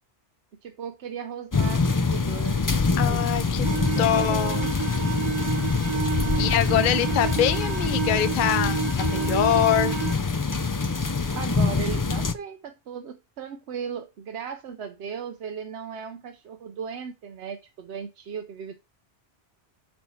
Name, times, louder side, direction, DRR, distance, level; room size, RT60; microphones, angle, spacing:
voice 1, 0.6-4.7 6.2-7.1 11.3-18.7, right 7 dB, 90° right, 1.0 m, -37 dB
sound 1, 1.5-12.3, left 4 dB, 30° left, 0.4 m, -25 dB
voice 2, 3.0-3.7 4.0-4.6 6.4-10.0, left 11 dB, 55° left, 0.7 m, -24 dB
sound 2, 3.6-10.1, right 9 dB, 30° right, 0.7 m, -30 dB
8.8 x 4.4 x 5.5 m
omnidirectional pair, 1.1 m